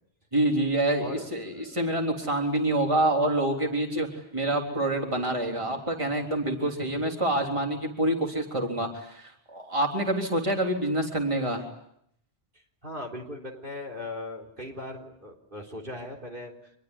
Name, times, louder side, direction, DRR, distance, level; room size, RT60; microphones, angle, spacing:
voice 1, 0.3-11.6, right 1 dB, 30° right, 2 dB, 3.7 m, -27 dB
voice 2, 1.0-1.8 12.8-16.5, left 1 dB, 55° right, 2 dB, 4.1 m, -39 dB
27.0 x 22.0 x 9.9 m, 0.73 s
omnidirectional pair, 1.1 m